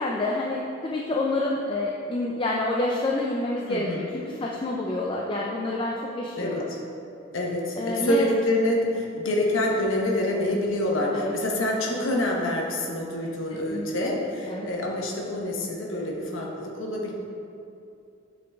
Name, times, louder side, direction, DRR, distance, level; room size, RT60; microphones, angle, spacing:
voice 1, 0.0-3.9 4.1-6.7 7.8-8.3 11.1-11.3 13.7-14.2 14.5-14.7, left 2 dB, 25° left, -2 dB, 0.4 m, -28 dB
voice 2, 3.7-4.1 6.4-6.8 7.3-17.1, left 1 dB, 75° left, -1 dB, 1.0 m, -26 dB
8.1 x 3.9 x 3.4 m, 2.6 s
head